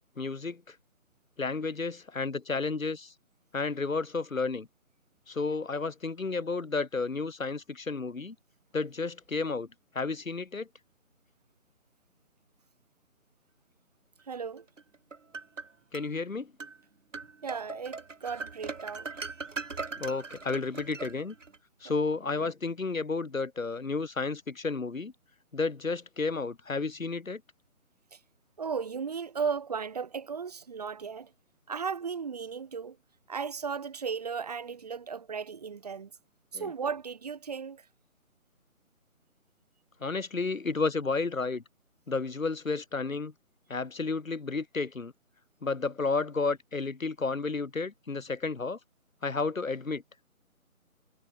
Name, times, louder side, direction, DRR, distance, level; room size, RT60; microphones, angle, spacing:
voice 1, 0.2-0.7 1.4-3.1 3.5-4.7 5.3-8.4 8.7-9.7 9.9-10.7 15.9-16.5 20.0-21.3 21.8-25.1 25.5-27.4 36.5-36.7 40.0-41.6 42.1-43.3 43.7-45.1 45.6-48.8 49.2-50.0, left 4 dB, 70° left, 4.2 m, -32 dB
voice 2, 14.3-14.7 17.4-19.2 28.1-28.2 28.6-31.3 31.7-33.0 33.3-36.1 36.5-37.8, right 6 dB, 30° right, 1.2 m, -35 dB
sound 1, 14.8-16.1 16.6-16.8 17.1-21.6, right 4 dB, 60° right, 7.6 m, -40 dB
figure-of-eight pair, 160°, 42 cm